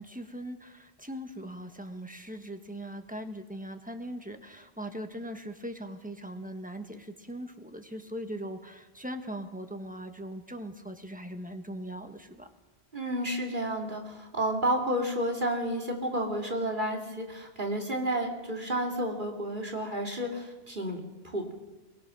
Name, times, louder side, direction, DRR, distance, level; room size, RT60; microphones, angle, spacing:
voice 1, 0.0-12.5, equal, 5° right, 6 dB, 1.4 m, -40 dB
voice 2, 12.9-21.5, right 1 dB, 45° right, 1 dB, 2.7 m, -31 dB
23.0 x 19.5 x 6.2 m, 1.1 s
omnidirectional pair, 1.2 m